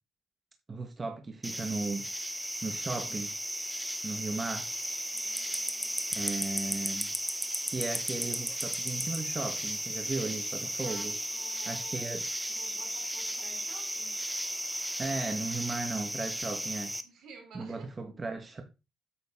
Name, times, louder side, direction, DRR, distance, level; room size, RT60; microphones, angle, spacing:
voice 1, 0.7-2.1 2.6-3.3 4.0-4.7 6.1-7.1 7.7-11.1 11.6-12.3 15.0-16.9 17.5-18.6, right 3 dB, 30° right, 1.5 m, -36 dB
sound 1, 1.4-17.0, equal, 5° right, 0.9 m, -35 dB
voice 2, 5.1-6.0 10.6-12.0 12.5-14.2 17.0-17.9, right 5 dB, 75° right, 3.6 m, -53 dB
8.8 x 6.5 x 3.7 m
cardioid pair, 90°, 0 cm